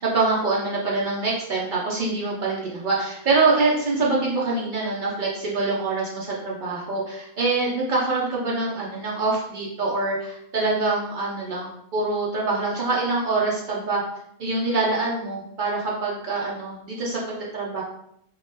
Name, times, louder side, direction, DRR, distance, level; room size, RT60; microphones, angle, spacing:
voice 1, 0.0-14.0 14.4-17.2 17.5-17.8, right 3 dB, 65° right, -4 dB, 0.5 m, -25 dB
2.3 x 2.1 x 3.1 m, 0.73 s
omnidirectional pair, 1.4 m